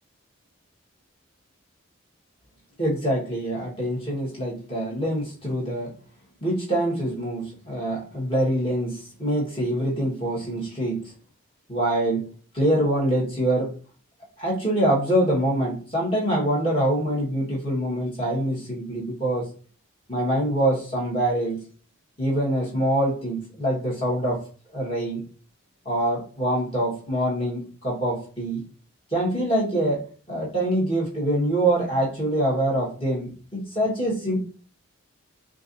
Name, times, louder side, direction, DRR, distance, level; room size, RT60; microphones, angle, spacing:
voice 1, 2.8-5.9 6.4-11.1 11.7-12.3 12.5-13.7 14.4-19.5 20.1-21.6 22.2-24.4 24.7-25.2 25.8-28.6 29.1-34.4, right 1 dB, 25° left, -6 dB, 1.5 m, -25 dB
4.6 x 2.5 x 2.7 m, 0.39 s
head